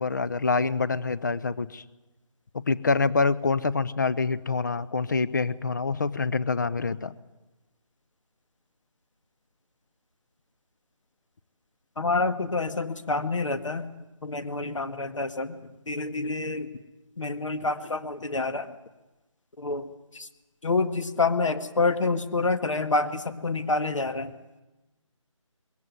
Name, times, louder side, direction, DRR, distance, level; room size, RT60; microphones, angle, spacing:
voice 1, 0.0-1.8 2.5-7.1, left 4 dB, 35° left, 16 dB, 0.7 m, -26 dB
voice 2, 12.0-13.9 14.2-15.6 15.9-16.7 17.2-18.7 19.6-20.3 20.6-24.3, left 3 dB, 65° left, 9 dB, 1.9 m, -27 dB
21.5 x 16.5 x 9.4 m, 1.1 s
figure-of-eight pair, 165°, 17 cm